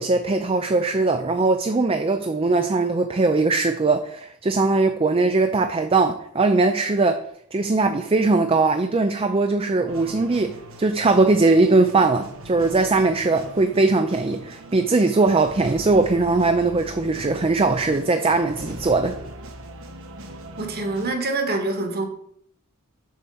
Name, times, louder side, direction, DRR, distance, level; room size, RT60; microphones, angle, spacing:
voice 1, 0.0-7.2 7.5-19.2, right 3 dB, 25° right, 0.5 m, -20 dB
sound 1, 9.9-21.1, right 1 dB, 65° right, 1.2 m, -40 dB
voice 2, 20.6-22.1, right 2 dB, 45° right, 1.5 m, -25 dB
7.4 x 4.4 x 6.9 m
head